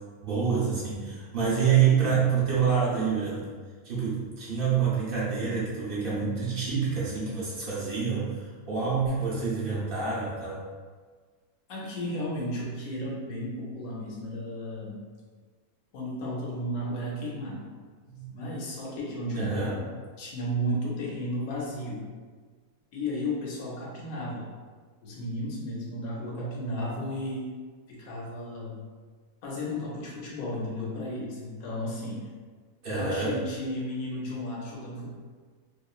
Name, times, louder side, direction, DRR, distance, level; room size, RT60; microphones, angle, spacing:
voice 1, 0.2-3.5 3.8-10.6 18.1-18.3 19.3-19.7 32.8-33.4, right 6 dB, 45° right, -7 dB, 0.8 m, -27 dB
voice 2, 11.7-15.0 15.9-17.7 18.3-22.1 22.9-24.5 25.0-27.5 27.9-28.8 29.4-32.3 32.9-35.1, equal, 75° left, -4 dB, 1.1 m, -34 dB
3.0 x 2.5 x 2.3 m, 1.5 s
omnidirectional pair, 1.6 m